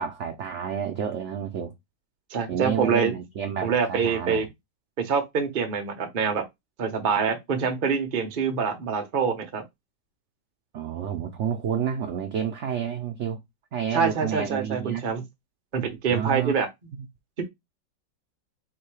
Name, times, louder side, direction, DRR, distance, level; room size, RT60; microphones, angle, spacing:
voice 1, 0.0-1.7 2.5-4.5 10.7-13.4 13.7-15.0 16.1-16.5 16.9-17.1, right 8 dB, 80° right, 0.6 m, -30 dB
voice 2, 2.3-3.1 3.6-4.4 5.0-6.4 6.8-9.6 13.9-15.2 15.7-16.7, right 6 dB, 40° right, 0.8 m, -25 dB
3.6 x 2.8 x 4.7 m
omnidirectional pair, 2.0 m